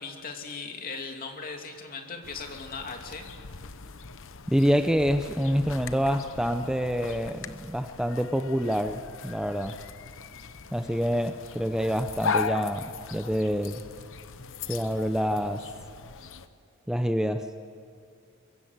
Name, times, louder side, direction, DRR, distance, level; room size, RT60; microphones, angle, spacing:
voice 1, 0.0-3.3, left 4 dB, 40° left, 3 dB, 2.6 m, -38 dB
sound 1, 2.2-16.5, left 5 dB, 60° left, 1.0 m, -38 dB
voice 2, 4.5-9.8 10.7-13.8 14.7-15.7 16.9-17.5, equal, 5° right, 7 dB, 0.6 m, -27 dB
23.5 x 22.5 x 8.1 m, 2.4 s
head